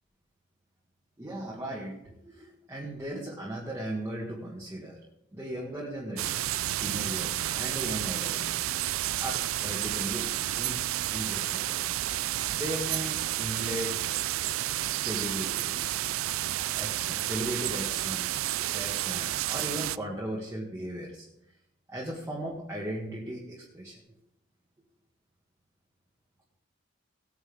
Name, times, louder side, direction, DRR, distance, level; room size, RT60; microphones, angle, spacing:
voice 1, 1.2-5.0 5.3-10.3 10.6-10.8 11.1-11.8 12.5-14.0 14.8-16.4 16.8-21.3 21.9-24.0, right 1 dB, 15° right, -4 dB, 1.8 m, -37 dB
sound 1, 6.2-20.0, right 14 dB, 85° right, 0.4 m, -31 dB
18.5 x 9.2 x 3.5 m, 0.82 s
head